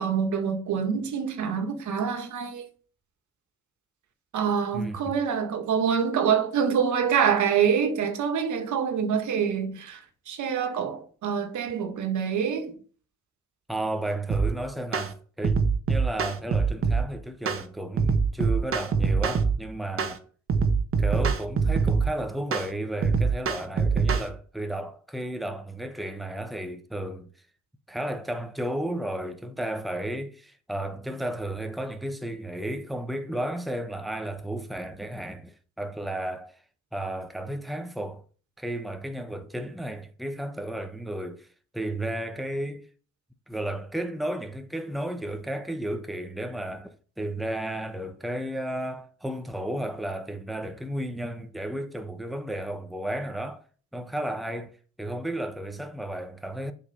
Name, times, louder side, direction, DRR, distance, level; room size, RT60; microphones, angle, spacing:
voice 1, 0.0-2.7 4.3-12.7, right 7 dB, 75° right, 1.9 m, -26 dB
voice 2, 4.7-5.1 13.7-15.5 15.9-20.2 21.0-27.3 27.9-36.6 36.9-38.2 38.6-41.5 41.7-42.9 43.5-53.6 53.9-54.7 55.0-56.7, right 1 dB, ahead, 1.1 m, -33 dB
sound 1, 14.3-14.5 14.9-15.1 15.4-17.0 17.5-17.6 18.0-19.6 20.0-20.2 20.5-22.1 22.5-22.7 23.0-24.3, right 5 dB, 45° right, 1.3 m, -24 dB
7.9 x 5.3 x 5.6 m
cardioid pair, 90°, 30 cm